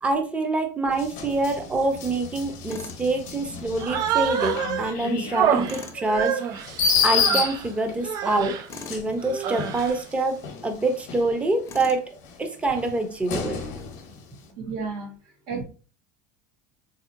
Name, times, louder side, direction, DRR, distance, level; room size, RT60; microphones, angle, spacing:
voice 1, 0.0-6.6 7.0-8.6 8.9-12.0 12.4-13.6, right 2 dB, 15° right, 5 dB, 0.7 m, -26 dB
sound 1, 0.9-8.1 8.7-11.8 12.2-14.3, left 6 dB, 75° left, 0.8 m, -30 dB
Tools, 2.7-3.0 5.6-6.0 8.7-9.1 11.7-12.1, left 4 dB, 35° left, 0.6 m, -40 dB
Human voice, 3.8-4.9 5.3-7.7 8.0-8.7 9.2-10.0, right 9 dB, 50° right, 0.4 m, -27 dB
voice 2, 14.6-15.6, right 4 dB, 70° right, 0 dB, 1.1 m, -33 dB
3.4 x 2.7 x 2.6 m, 0.36 s
supercardioid pair, 105°, 8 cm